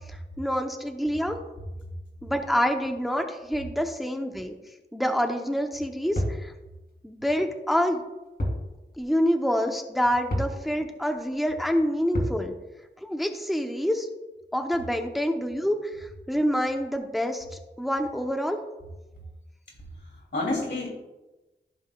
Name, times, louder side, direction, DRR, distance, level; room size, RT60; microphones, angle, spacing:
voice 1, 0.4-1.4 2.2-4.6 4.9-6.5 7.0-8.0 9.0-12.5 13.0-14.1 14.5-17.4 17.8-18.6, equal, ahead, 4 dB, 0.8 m, -27 dB
sound 1, 6.2-6.5 8.4-8.7 9.0-9.1 10.3-10.6 12.1-12.4, equal, 55° left, 2.3 m, -28 dB
voice 2, 19.7-20.9, left 2 dB, 70° left, -2 dB, 2.6 m, -31 dB
14.5 x 5.4 x 2.3 m, 1.1 s
wide cardioid pair, 55°, 19 cm